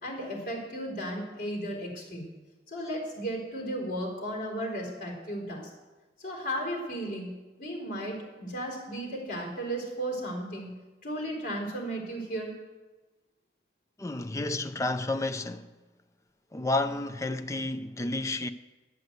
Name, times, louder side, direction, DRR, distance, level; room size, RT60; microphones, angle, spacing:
voice 1, 0.0-2.3 2.7-5.7 6.2-10.8 11.0-12.5, right 1 dB, 50° left, 4.0 m, -35 dB
voice 2, 14.0-15.7 16.5-18.5, left 2 dB, 15° left, 0.5 m, -31 dB
11.0 x 7.8 x 8.0 m
head